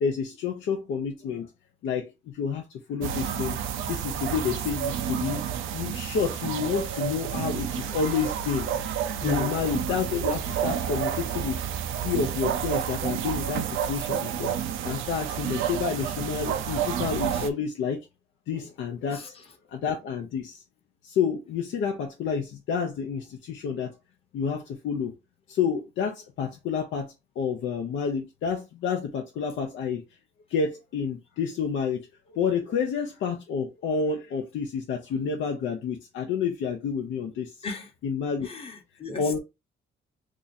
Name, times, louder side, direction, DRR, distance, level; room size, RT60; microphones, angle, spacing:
voice 1, 0.0-1.5 1.8-2.6 2.9-3.6 3.9-5.4 5.7-8.7 9.2-11.6 12.0-18.0 18.5-19.3 19.7-20.6 21.0-23.9 24.3-25.1 25.5-30.0 30.5-32.1 32.3-37.5 38.0-38.5 39.2-39.4, left 6 dB, 75° left, 0.7 m, -29 dB
sound 1, 3.0-17.5, right 9 dB, 85° right, 0.5 m, -30 dB
voice 2, 9.1-9.6 17.3-17.5 19.1-19.5 37.6-37.9 38.4-39.4, left 3 dB, 30° left, 1.0 m, -37 dB
2.8 x 2.5 x 4.0 m
cardioid pair, 90°, 20 cm